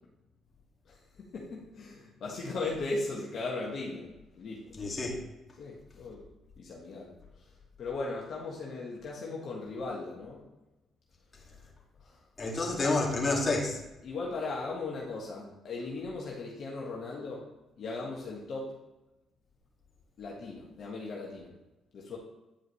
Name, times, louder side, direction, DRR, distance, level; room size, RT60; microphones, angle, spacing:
voice 1, 0.9-4.1 4.3-4.7 5.6-6.2 6.6-7.1 7.8-10.4 12.0-12.2 12.8-12.9 14.0-17.4 17.8-18.8 20.2-21.5 21.9-22.2, left 3 dB, 65° left, -4 dB, 1.5 m, -37 dB
voice 2, 4.8-5.2 12.4-13.8, left 2 dB, 35° left, -2 dB, 2.1 m, -29 dB
10.0 x 4.8 x 3.1 m, 0.99 s
supercardioid pair, 60°, 0 cm